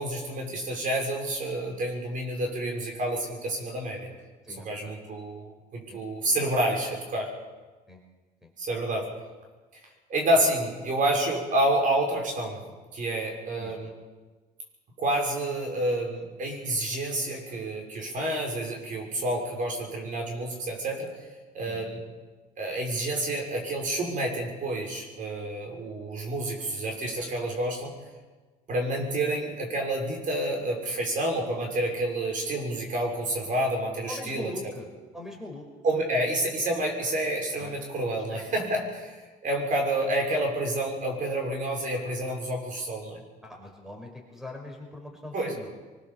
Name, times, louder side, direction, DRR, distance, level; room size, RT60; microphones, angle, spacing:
voice 1, 0.0-4.1 4.6-7.3 8.6-9.1 10.1-12.6 12.9-13.9 15.0-21.1 21.5-22.0 22.6-27.9 28.7-34.5 35.8-43.2 45.3-45.5, right 1 dB, 50° right, 1 dB, 6.4 m, -29 dB
voice 2, 4.4-4.9 5.9-6.0 7.9-8.0 8.4-8.5 13.6-13.9 21.6-22.0 34.1-35.6 37.6-37.8 38.3-38.4 43.4-45.7, left 2 dB, ahead, 2 dB, 5.3 m, -41 dB
23.5 x 21.5 x 7.2 m, 1.3 s
cardioid pair, 110°, 17 cm